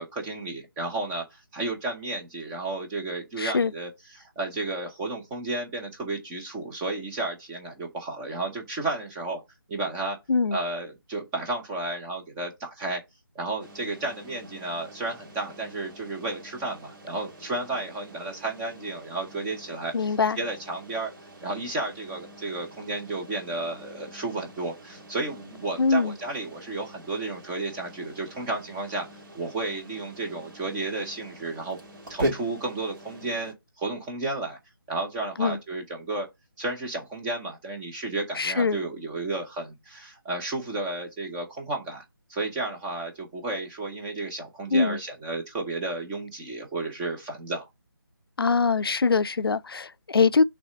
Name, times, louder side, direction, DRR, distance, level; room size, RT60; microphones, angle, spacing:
voice 1, 0.0-9.4 9.7-10.2 10.5-13.0 13.3-21.1 21.4-29.1 29.3-31.8 32.1-34.6 34.9-36.3 36.6-42.0 42.3-47.7, right 2 dB, 10° right, 0.6 m, -32 dB
voice 2, 3.4-3.7 10.3-10.6 19.9-20.4 25.8-26.1 35.4-35.6 38.4-38.8 44.7-45.0 48.4-50.4, left 4 dB, 75° left, 0.4 m, -23 dB
sound 1, 13.6-33.5, right 1 dB, 55° right, 2.3 m, -41 dB
5.9 x 3.3 x 4.9 m
figure-of-eight pair, 155°, 13 cm